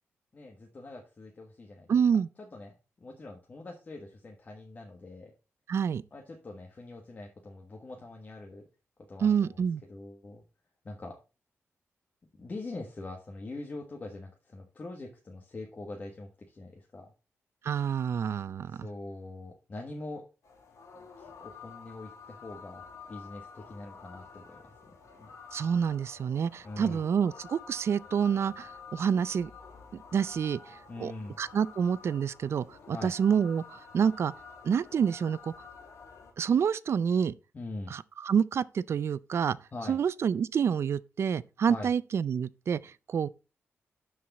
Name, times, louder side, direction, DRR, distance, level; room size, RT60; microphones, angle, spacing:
voice 1, 0.3-2.0 2.4-5.3 6.1-8.7 9.1-10.4 10.8-11.2 12.3-17.1 18.7-20.2 21.2-24.7 25.2-25.3 26.6-27.0 30.9-31.4 32.9-33.1 37.5-37.9 39.7-40.0 41.7-41.9, left 2 dB, 35° left, 1.4 m, -43 dB
voice 2, 1.9-2.3 5.7-6.0 9.2-9.8 17.6-18.9 25.5-29.5 30.1-31.1 31.4-34.3 34.6-35.5 36.4-37.3 37.9-39.6 39.9-43.3, right 7 dB, 60° right, 0.4 m, -28 dB
sound 1, 20.4-36.3, left 5 dB, 90° left, 2.9 m, -50 dB
12.0 x 4.8 x 4.1 m
wide cardioid pair, 140°, 5 cm